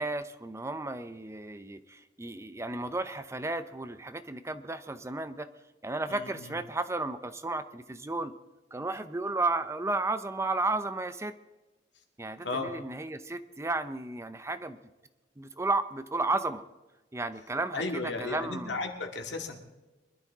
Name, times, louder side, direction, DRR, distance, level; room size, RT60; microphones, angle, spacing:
voice 1, 0.0-5.5 5.8-8.3 8.7-11.3 12.2-14.8 15.4-16.6 17.1-18.7, right 2 dB, 15° right, 11 dB, 0.6 m, -33 dB
voice 2, 6.1-6.6 12.4-12.7 17.7-19.6, left 3 dB, 70° left, 3 dB, 2.1 m, -35 dB
23.5 x 12.0 x 3.6 m, 1.1 s
head